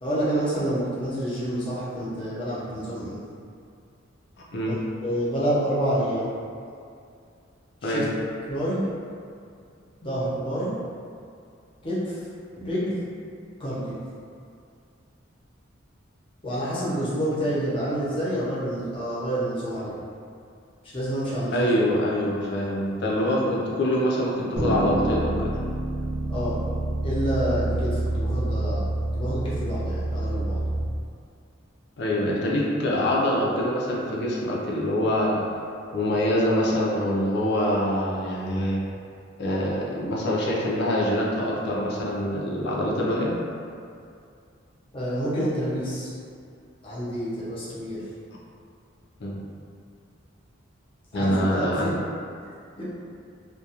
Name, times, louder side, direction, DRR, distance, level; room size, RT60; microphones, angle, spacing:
voice 1, 0.0-3.2 4.6-4.8 5.0-6.3 7.8-8.0 8.5-8.8 10.0-10.7 11.8-12.2 12.6-13.0 13.6-14.0 16.4-20.0 20.9-21.7 26.3-26.6 27.0-28.8 29.1-30.6 44.9-46.1 46.8-48.0 51.1-51.9 52.8-52.9, right 1 dB, 25° left, -10 dB, 0.7 m, -28 dB
voice 2, 21.5-25.6 32.0-35.4 35.9-38.8 39.4-43.3 49.2-49.4 51.1-51.9, equal, 60° left, -4 dB, 0.5 m, -25 dB
sound 1, 24.6-30.8, right 1 dB, 35° right, 0.7 m, -27 dB
2.3 x 2.2 x 2.8 m, 2.4 s
head